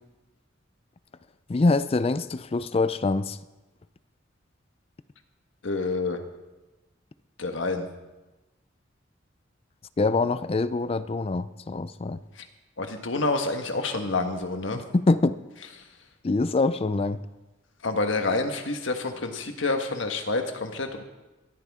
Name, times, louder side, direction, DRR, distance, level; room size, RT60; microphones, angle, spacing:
voice 1, 1.5-3.4 10.0-12.2 14.7-15.4 16.2-17.2, left 3 dB, 30° left, 0.4 m, -24 dB
voice 2, 5.6-6.2 7.4-7.9 12.8-14.8 17.8-21.0, left 3 dB, 75° left, 1.5 m, -28 dB
19.5 x 13.5 x 3.7 m
head